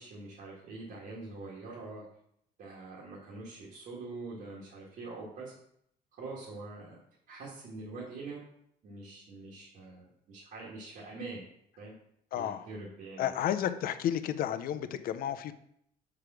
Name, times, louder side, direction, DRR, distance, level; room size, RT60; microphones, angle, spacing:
voice 1, 0.0-2.1 2.6-5.5 6.1-7.0 7.3-8.4 8.8-11.4 11.8-11.9 12.3-13.3, right 3 dB, 65° right, -4 dB, 1.8 m, -44 dB
voice 2, 12.3-12.7 13.2-15.5, left 10 dB, 60° left, 11 dB, 0.6 m, -32 dB
4.9 x 4.8 x 6.1 m, 0.73 s
cardioid pair, 110°, 17 cm